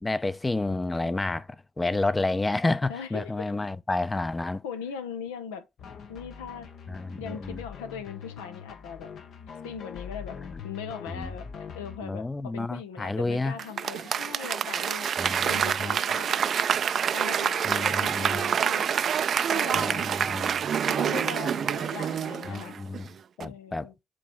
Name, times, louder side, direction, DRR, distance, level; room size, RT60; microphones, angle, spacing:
voice 1, 0.0-1.5 1.8-4.6 6.9-7.6 10.4-10.5 11.1-11.3 12.0-13.6 15.2-16.0 17.6-18.4 19.7-20.6 22.4-23.1 23.4-23.9, left 2 dB, 20° left, 0.5 m, -30 dB
voice 2, 2.9-3.3 4.6-5.6 6.1-6.7 7.2-9.1 9.6-10.4 10.6-15.1 15.4-16.5 17.1-18.9 19.5-20.1 20.9-22.8 23.4-23.9, left 7 dB, 90° left, 0.6 m, -39 dB
sound 1, 5.8-12.0, left 6 dB, 65° left, 0.9 m, -43 dB
Applause / Crowd, 13.6-23.0 23.4-23.5, right 8 dB, 60° right, 0.4 m, -27 dB
7.5 x 3.1 x 4.3 m
hypercardioid pair, 50°, 0 cm